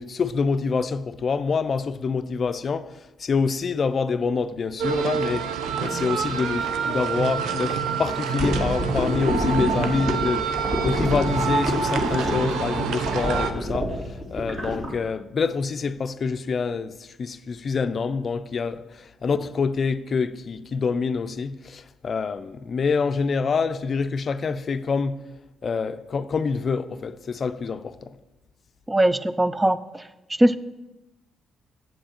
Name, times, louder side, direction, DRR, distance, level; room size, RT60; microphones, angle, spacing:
voice 1, 0.0-5.5 5.8-25.2 25.6-28.2, left 5 dB, 45° left, 0.4 m, -26 dB
sound 1, 4.8-13.5, right 6 dB, 80° right, 0.6 m, -27 dB
sound 2, 8.4-14.9, equal, 45° right, 2.5 m, -27 dB
voice 2, 28.9-30.6, right 1 dB, 15° right, 0.4 m, -21 dB
7.6 x 7.6 x 4.4 m
cardioid pair, 90°, 0 cm